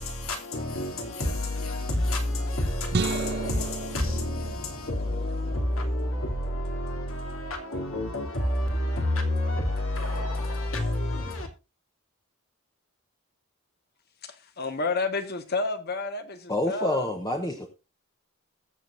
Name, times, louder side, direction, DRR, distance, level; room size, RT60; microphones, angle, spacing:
voice 1, 0.0-11.5, left 1 dB, 70° left, 2.9 m, -29 dB
sound 1, 2.9-5.3, right 4 dB, 45° right, 0.5 m, -33 dB
voice 2, 14.3-17.1, left 3 dB, 45° left, 1.4 m, -30 dB
voice 3, 16.5-17.7, left 1 dB, 20° left, 1.0 m, -27 dB
21.0 x 7.2 x 2.6 m
head